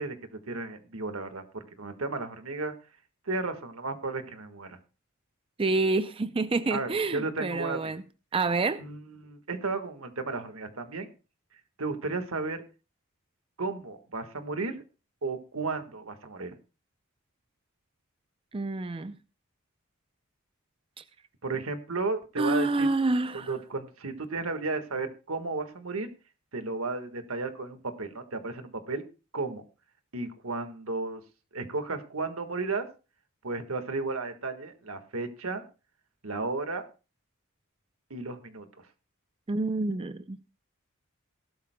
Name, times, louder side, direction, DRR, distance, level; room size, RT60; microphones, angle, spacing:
voice 1, 0.0-2.7 3.3-4.8 6.7-7.9 8.8-11.1 11.8-12.6 13.6-14.7 15.2-16.5 21.4-22.9 23.3-26.1 26.5-29.0 29.3-29.6 30.1-31.2 31.5-32.8 33.4-35.6 36.2-36.9 38.1-38.7, right 3 dB, 80° right, 1.6 m, -34 dB
voice 2, 5.6-8.0 8.3-8.8 18.5-19.1 21.0-21.1 22.4-23.5 39.5-40.4, right 3 dB, 25° right, 0.5 m, -28 dB
18.5 x 12.5 x 2.2 m
head